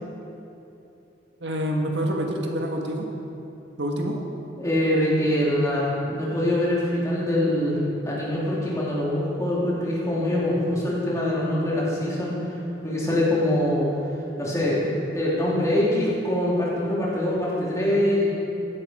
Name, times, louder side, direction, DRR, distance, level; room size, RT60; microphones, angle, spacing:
voice 1, 1.4-3.1 3.8-4.2, equal, 85° right, 1 dB, 1.7 m, -27 dB
voice 2, 4.6-7.8 8.0-12.3 12.8-13.9 14.4-14.9 15.1-18.3, left 1 dB, 20° left, -7 dB, 3.5 m, -24 dB
15.5 x 11.5 x 4.8 m, 2.9 s
head